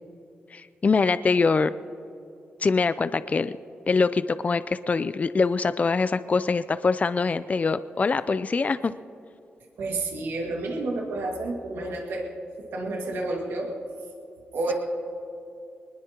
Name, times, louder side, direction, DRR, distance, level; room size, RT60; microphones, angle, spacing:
voice 1, 0.5-1.7 2.6-3.6 3.9-8.9, left 4 dB, 40° left, 14 dB, 0.4 m, -24 dB
voice 2, 9.8-12.3 12.6-13.8 14.5-14.7, right 2 dB, 90° right, 0 dB, 2.1 m, -30 dB
22.5 x 20.0 x 3.0 m, 2.7 s
cardioid pair, 65°, 4 cm